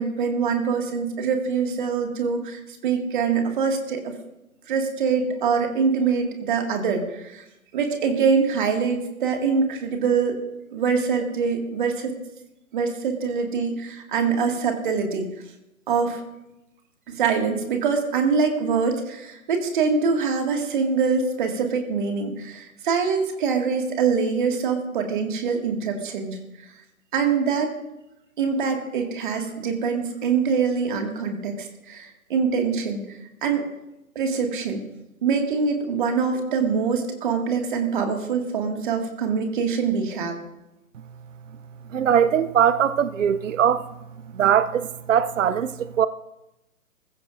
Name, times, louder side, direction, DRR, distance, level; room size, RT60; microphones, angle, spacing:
voice 1, 0.0-4.0 4.7-7.4 7.7-10.4 10.7-12.1 12.7-15.2 15.9-16.2 17.1-26.4 27.1-27.7 28.4-33.0 33.4-33.7 34.2-34.8 35.2-40.4, right 5 dB, 35° right, 2.1 m, -24 dB
voice 2, 41.9-43.9 44.3-46.1, right 8 dB, 60° right, 0.6 m, -21 dB
21.5 x 15.0 x 2.6 m
figure-of-eight pair, 140°, 43 cm